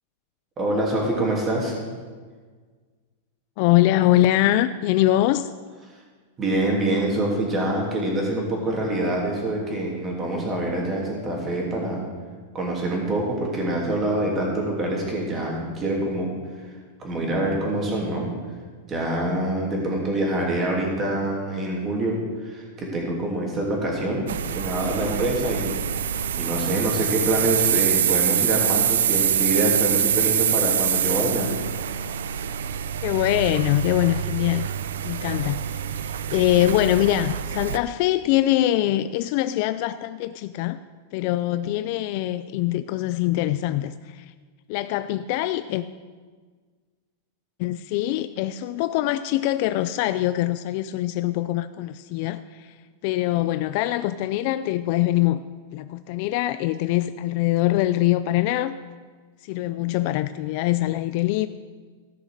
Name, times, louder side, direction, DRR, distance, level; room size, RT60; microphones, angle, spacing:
voice 1, 0.6-1.7 6.4-12.0 12.5-16.3 16.6-16.7 17.0-18.3 18.9-25.8 26.4-31.5, right 1 dB, 20° right, -1 dB, 3.0 m, -25 dB
voice 2, 3.6-5.5 33.0-34.7 35.0-40.8 41.1-44.3 44.7-45.9 47.6-52.7 53.0-55.4 55.7-58.8 59.4-61.5, left 14 dB, 45° left, 13 dB, 0.4 m, -23 dB
sound 1, 24.3-37.8, right 9 dB, 85° right, 0.5 m, -25 dB
15.0 x 6.5 x 6.6 m, 1.5 s
supercardioid pair, 155°, 0 cm